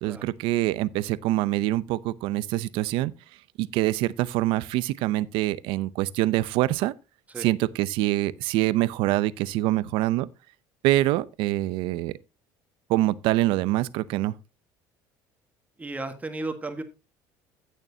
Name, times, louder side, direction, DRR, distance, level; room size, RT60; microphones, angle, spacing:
voice 1, 0.0-3.1 3.6-6.9 7.4-10.3 10.8-12.2 12.9-14.3, right 16 dB, 75° right, 0.6 m, -25 dB
voice 2, 15.8-16.8, right 2 dB, 15° right, 1.5 m, -34 dB
15.0 x 6.7 x 2.8 m
cardioid pair, 110°, 9 cm